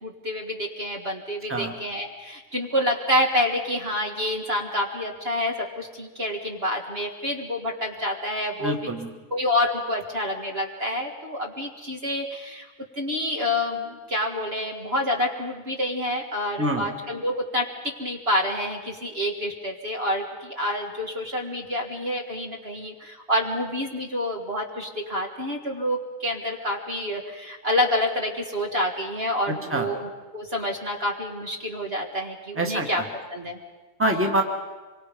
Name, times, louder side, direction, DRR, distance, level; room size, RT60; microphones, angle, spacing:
voice 1, 0.0-8.7 9.3-12.7 13.0-33.0 33.3-33.6, left 1 dB, 40° right, 1 dB, 2.0 m, -28 dB
voice 2, 8.6-9.1 16.6-16.8 29.7-29.9 32.5-33.1 34.0-34.4, right 1 dB, 10° right, 2 dB, 1.8 m, -25 dB
26.5 x 23.5 x 5.3 m, 1.2 s
omnidirectional pair, 1.7 m